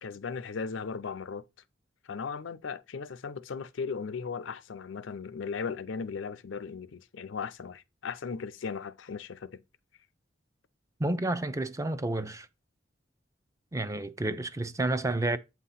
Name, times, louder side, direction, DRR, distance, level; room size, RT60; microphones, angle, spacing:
voice 1, 0.0-1.4 2.0-9.6, left 5 dB, 75° left, 0.5 m, -37 dB
voice 2, 11.0-12.5 13.7-15.4, right 2 dB, 15° right, 0.5 m, -30 dB
8.2 x 2.8 x 5.6 m
head